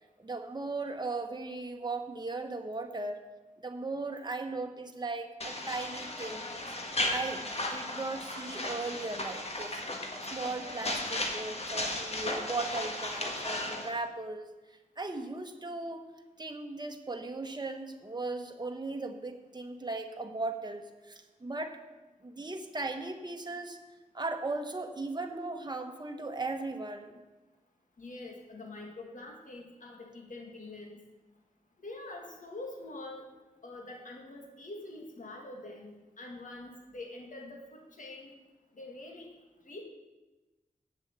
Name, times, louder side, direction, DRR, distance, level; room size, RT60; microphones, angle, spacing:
voice 1, 0.2-3.2 3.6-6.6 7.1-9.8 10.3-14.5 15.0-16.0 16.4-21.8 22.2-23.8 24.1-27.2, right 3 dB, 30° right, 5 dB, 1.2 m, -37 dB
sound 1, 5.4-13.9, left 1 dB, 50° left, 1.6 m, -35 dB
voice 2, 28.0-31.0 31.8-33.2 33.6-38.3 38.8-39.3 39.7-39.8, left 2 dB, 70° left, 1 dB, 1.9 m, -45 dB
8.8 x 7.5 x 7.4 m, 1.1 s
wide cardioid pair, 90°, 14 cm